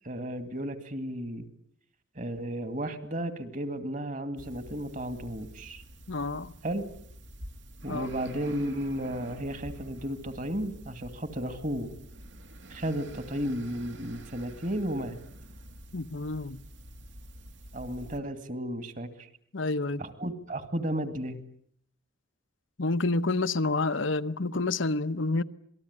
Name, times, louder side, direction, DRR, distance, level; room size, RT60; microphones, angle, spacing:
voice 1, 0.0-1.5 2.2-5.8 6.6-6.9 7.8-11.9 12.7-15.2 17.7-19.3 20.0-21.4, right 1 dB, 40° right, 2.4 m, -33 dB
sound 1, 4.4-18.2, right 1 dB, 70° right, 2.3 m, -47 dB
voice 2, 6.1-6.5 7.9-8.1 15.9-16.6 19.5-20.0 22.8-25.4, left 3 dB, 80° left, 1.0 m, -28 dB
27.0 x 19.5 x 9.8 m
head